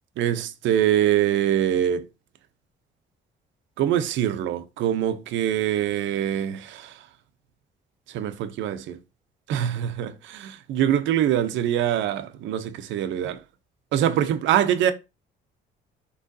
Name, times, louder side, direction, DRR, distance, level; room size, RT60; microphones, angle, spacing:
voice 1, 0.2-2.1 3.8-7.1 8.1-9.0 9.5-13.4 13.9-14.9, right 10 dB, 85° right, 0.6 m, -24 dB
6.2 x 3.1 x 2.6 m
cardioid pair, 135°, 19 cm